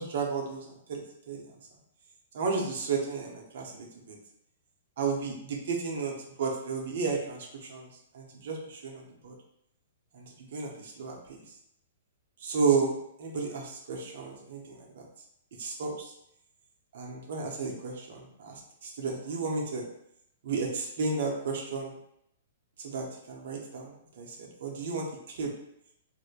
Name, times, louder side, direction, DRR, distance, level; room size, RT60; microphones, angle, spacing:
voice 1, 0.0-1.4 2.3-4.2 5.0-7.9 8.1-9.3 10.1-11.4 12.4-12.9 13.2-15.0 15.6-16.1 16.9-19.8 20.4-21.9 22.8-25.5, right 4 dB, 65° right, 0 dB, 0.7 m, -33 dB
3.2 x 2.1 x 2.4 m, 0.75 s
hypercardioid pair, 120°, 0 cm